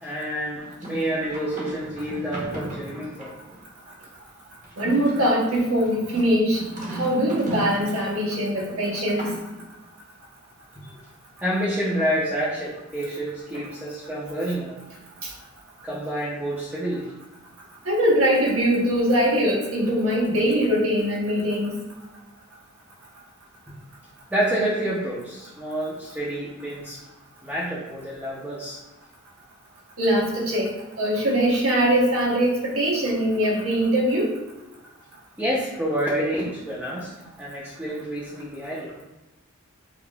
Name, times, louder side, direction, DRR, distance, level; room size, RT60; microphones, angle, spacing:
voice 1, 0.0-3.3 10.8-10.9 11.4-14.8 15.8-17.0 24.3-27.0 27.4-28.8 35.4-37.1 37.4-38.9, right 1 dB, 5° right, -7 dB, 0.6 m, -28 dB
sound 1, 0.6-3.6 4.6-8.1 8.7-9.6, equal, 35° right, 0.9 m, -36 dB
voice 2, 4.8-6.6 6.9-9.3 15.2-15.3 17.9-21.8 30.0-30.7 31.0-34.3, equal, 80° right, -3 dB, 1.0 m, -22 dB
4.9 x 2.8 x 2.3 m, 1.0 s
head